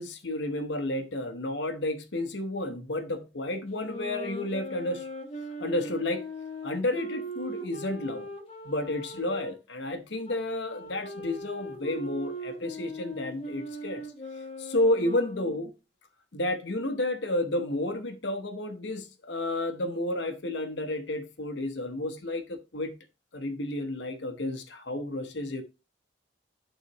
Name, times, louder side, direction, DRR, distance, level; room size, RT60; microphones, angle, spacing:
voice 1, 0.0-5.1 5.6-6.2 6.6-8.3 8.6-14.0 14.6-15.7 16.3-22.9 23.3-25.6, left 1 dB, 70° left, 1.0 m, -31 dB
sound 1, 3.7-9.5 10.2-15.7, right 1 dB, 30° left, 1.3 m, -40 dB
11.0 x 4.1 x 3.0 m
head